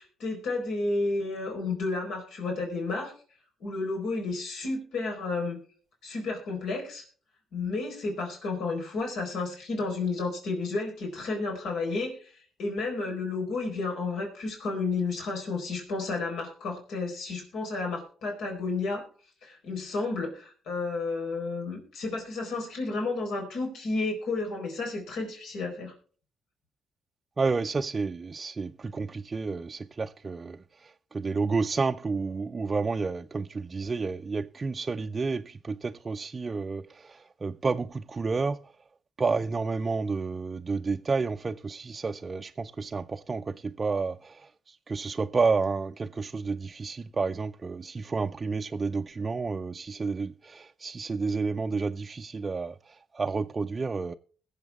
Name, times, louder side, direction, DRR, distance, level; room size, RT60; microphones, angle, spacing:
voice 1, 0.0-3.1 3.6-5.6 6.0-7.0 7.5-19.0 19.4-25.9, left 3 dB, 80° left, 4.3 m, -32 dB
voice 2, 27.4-38.6 39.2-54.1, right 4 dB, 30° right, 0.5 m, -30 dB
21.5 x 7.4 x 3.5 m
cardioid pair, 90°, 0 cm